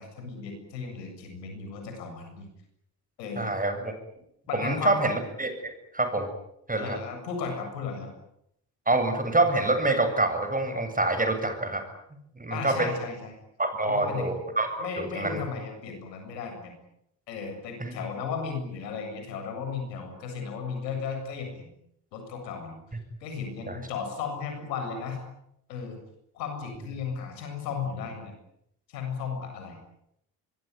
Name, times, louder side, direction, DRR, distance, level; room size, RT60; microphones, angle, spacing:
voice 1, 0.0-2.5 3.2-3.5 4.5-5.0 6.8-8.1 12.5-13.3 13.8-14.3 14.8-16.7 17.3-21.7 22.1-22.8 23.2-25.2 25.7-26.0 26.3-28.3 28.9-29.8, left 5 dB, 80° left, 5 dB, 7.7 m, -35 dB
voice 2, 3.4-3.9 4.5-6.3 6.7-7.0 8.9-11.8 12.4-12.9 13.6-14.7 15.0-15.4 17.8-17.9 23.7-23.8, right 2 dB, 15° right, 8 dB, 7.9 m, -26 dB
24.5 x 23.0 x 9.9 m, 0.77 s
hypercardioid pair, 60°, 49 cm